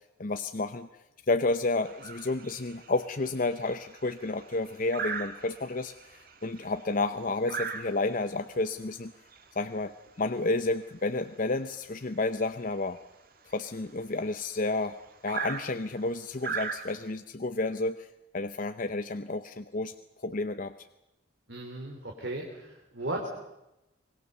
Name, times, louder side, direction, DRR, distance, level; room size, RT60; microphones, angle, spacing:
voice 1, 0.2-0.9 1.3-9.1 9.5-13.0 13.5-15.0 15.2-18.1 18.3-20.7, left 2 dB, 45° left, 9 dB, 0.8 m, -31 dB
sound 1, 1.8-17.1, right 6 dB, 50° right, 2.1 m, -41 dB
voice 2, 21.5-23.3, right 1 dB, 65° right, 1 dB, 3.5 m, -36 dB
24.5 x 21.0 x 6.8 m, 0.93 s
head